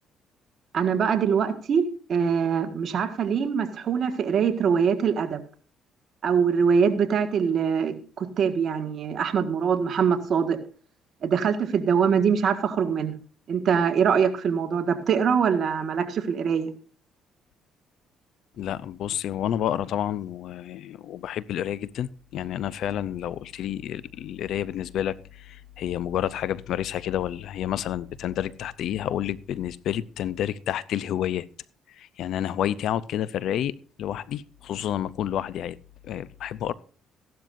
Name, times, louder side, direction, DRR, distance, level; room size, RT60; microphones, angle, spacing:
voice 1, 0.7-1.8 2.1-5.4 6.2-10.6 11.2-13.1 13.5-16.7, right 6 dB, 55° right, 1.7 m, -23 dB
voice 2, 18.6-31.5 32.0-35.8 36.0-36.7, left 11 dB, 70° left, 0.5 m, -29 dB
15.0 x 12.0 x 2.6 m
cardioid pair, 95°, 0 cm